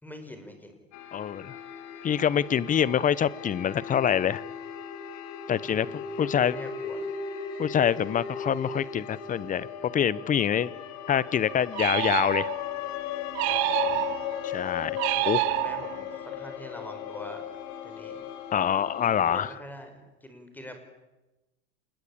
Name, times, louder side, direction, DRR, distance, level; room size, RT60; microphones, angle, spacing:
voice 1, 0.0-0.8 5.6-7.1 13.5-14.0 15.1-17.4 17.8-18.2 19.0-20.9, left 1 dB, 5° left, 6 dB, 5.2 m, -44 dB
sound 1, 0.9-19.5, left 8 dB, 50° left, 3.7 m, -37 dB
voice 2, 1.1-1.6 2.0-4.4 5.5-6.6 7.6-10.7 11.1-12.5 14.4-15.4 18.5-19.5, left 9 dB, 20° left, 21 dB, 0.8 m, -26 dB
sound 2, 11.7-12.8 13.3-14.4 15.0-16.2, right 22 dB, 65° right, 0.9 m, -28 dB
27.5 x 21.0 x 8.7 m, 1.0 s
supercardioid pair, 125°, 36 cm